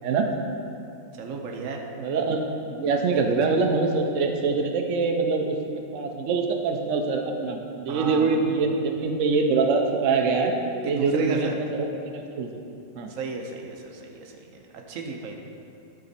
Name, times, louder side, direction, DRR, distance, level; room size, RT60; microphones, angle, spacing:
voice 1, 0.0-0.3 2.0-10.6 10.8-11.9 12.1-12.5 13.0-13.1, right 4 dB, 85° right, 3 dB, 0.6 m, -24 dB
voice 2, 1.1-1.8 3.2-3.6 7.9-8.5 10.8-11.6 13.1-15.3, right 4 dB, 55° right, 1 dB, 1.0 m, -35 dB
11.5 x 5.1 x 4.1 m, 2.6 s
omnidirectional pair, 2.1 m